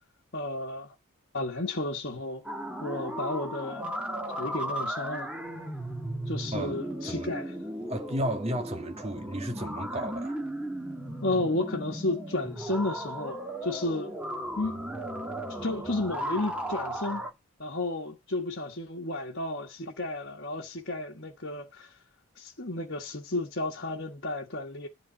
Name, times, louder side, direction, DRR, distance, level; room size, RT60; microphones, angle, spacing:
voice 1, 0.3-0.9 1.3-2.4 2.8-3.9 4.4-5.3 6.3-7.6 11.2-14.1 14.6-14.7 15.6-17.3 17.6-22.0 22.4-24.9, left 2 dB, 50° left, 1.5 m, -32 dB
sound 1, 2.4-17.3, right 1 dB, 5° right, 1.9 m, -36 dB
voice 2, 7.0-7.3 7.9-10.4, right 1 dB, 30° right, 1.7 m, -33 dB
11.5 x 4.1 x 7.6 m
head